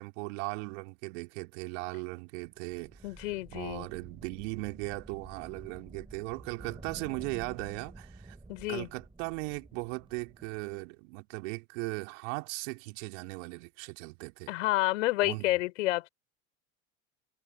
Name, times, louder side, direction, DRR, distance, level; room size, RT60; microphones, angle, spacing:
voice 1, 0.0-3.1 3.5-8.4 8.7-14.5 15.2-15.5, right 30 dB, 65° right, 2.6 m, -38 dB
sound 1, 2.5-10.9, right 2 dB, 10° right, 5.9 m, -51 dB
voice 2, 3.0-3.9 8.5-8.9 14.5-16.1, left 18 dB, 70° left, 4.2 m, -29 dB
hypercardioid pair, 70°, 40 cm